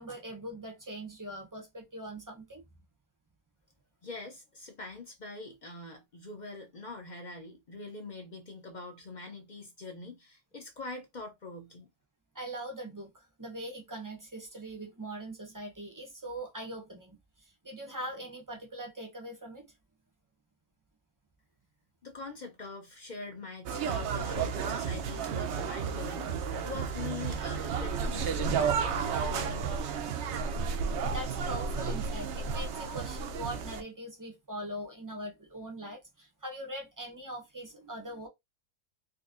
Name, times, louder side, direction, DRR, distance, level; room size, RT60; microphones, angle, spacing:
voice 1, 0.0-2.6 12.3-19.7 31.1-38.3, right 1 dB, 25° right, 0.4 m, -41 dB
voice 2, 4.0-11.9 22.0-29.9, left 3 dB, 55° left, 0.5 m, -44 dB
sound 1, 23.7-33.8, right 6 dB, 65° right, 0.7 m, -32 dB
3.9 x 2.7 x 2.5 m
omnidirectional pair, 1.7 m